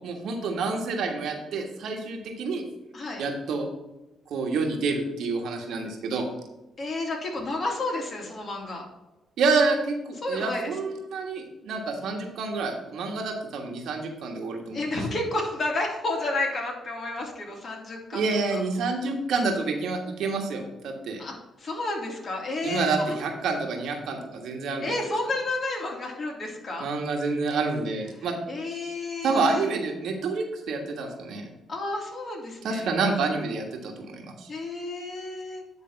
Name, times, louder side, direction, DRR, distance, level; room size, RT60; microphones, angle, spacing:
voice 1, 0.0-2.6 3.2-3.7 4.3-6.3 9.4-14.8 18.1-21.2 22.6-24.8 26.8-28.3 29.2-31.4 32.6-34.5, right 4 dB, 75° right, 2 dB, 1.5 m, -28 dB
voice 2, 6.8-8.9 10.2-10.8 14.7-18.2 18.5-18.6 21.2-23.2 24.8-26.9 28.2-29.7 31.7-32.9 34.5-35.6, left 2 dB, 50° left, 0 dB, 2.5 m, -31 dB
9.7 x 3.5 x 5.7 m, 1.0 s
cardioid pair, 75°, 0 cm